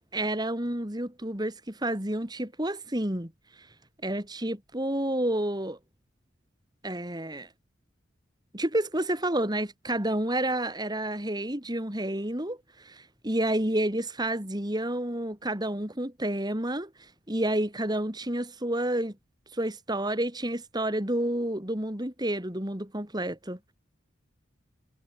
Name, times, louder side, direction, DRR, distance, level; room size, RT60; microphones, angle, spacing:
voice 1, 0.1-3.3 4.0-5.8 6.8-7.5 8.5-16.9 17.3-19.1 19.5-23.6, right 1 dB, 20° right, 3.2 m, -30 dB
head